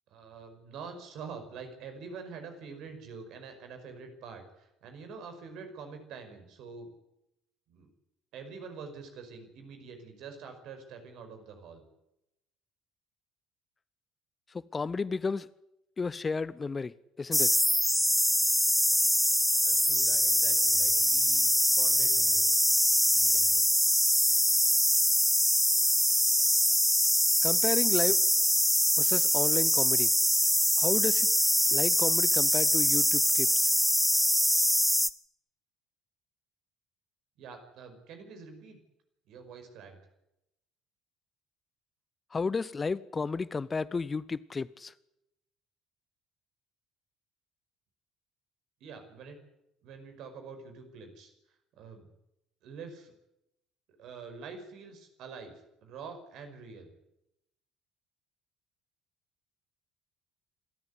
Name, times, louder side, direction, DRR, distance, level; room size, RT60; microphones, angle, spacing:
voice 1, 0.1-6.9 7.7-7.9 8.3-11.8 19.6-22.5 23.2-23.7 37.4-38.8 39.3-40.0 48.8-49.4 49.8-51.3 51.7-52.1 52.6-53.1 54.0-56.9, right 5 dB, 60° right, 5.4 m, -46 dB
voice 2, 14.5-15.5 16.0-17.6 27.4-28.2 29.0-30.1 30.8-31.3 31.7-33.7 42.3-44.9, left 4 dB, 30° left, 0.8 m, -32 dB
sound 1, 17.3-35.1, equal, ahead, 1.3 m, -24 dB
27.5 x 13.5 x 9.6 m
figure-of-eight pair, 50°, 0 cm